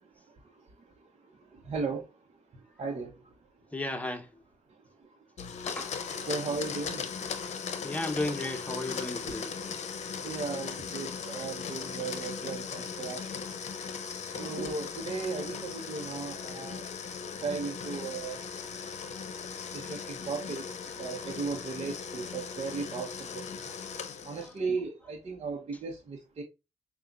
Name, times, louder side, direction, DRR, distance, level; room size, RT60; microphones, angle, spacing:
voice 1, 1.7-2.0 2.8-3.1 6.1-7.0 10.2-13.2 14.4-16.8 17.4-18.4 19.7-20.6 21.0-23.4 24.3-26.4, right 4 dB, 50° right, 0.9 m, -36 dB
voice 2, 3.7-4.3 5.7-6.7 7.8-9.5 19.8-19.9 23.9-24.5, left 2 dB, 10° left, 1.0 m, -36 dB
Domestic sounds home sounds, 5.4-24.6, left 6 dB, 65° left, 0.7 m, -38 dB
5.6 x 2.4 x 2.5 m
cardioid pair, 65°, 13 cm